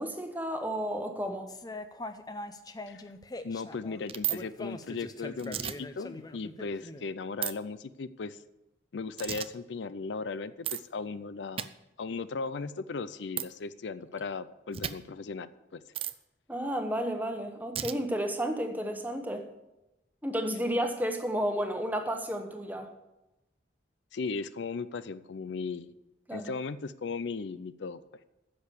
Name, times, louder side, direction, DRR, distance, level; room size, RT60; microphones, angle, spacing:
voice 1, 0.0-1.5 16.5-19.5 20.2-22.9 26.3-26.5, equal, 10° right, 5 dB, 1.0 m, -32 dB
sound 1, 1.5-7.0, left 2 dB, 20° left, 0.5 m, -42 dB
voice 2, 3.4-8.4 8.9-11.7 12.0-15.8 24.1-25.9 26.3-28.0, left 4 dB, 70° left, 15 dB, 0.5 m, -37 dB
sound 2, 4.1-4.4 5.4-5.7 7.4-7.5 9.2-9.5 10.6-10.8 11.6-11.7 13.4-13.5 14.7-14.9 15.9-16.1 17.7-17.9, right 11 dB, 30° right, 0.4 m, -33 dB
10.0 x 6.8 x 8.3 m, 0.97 s
head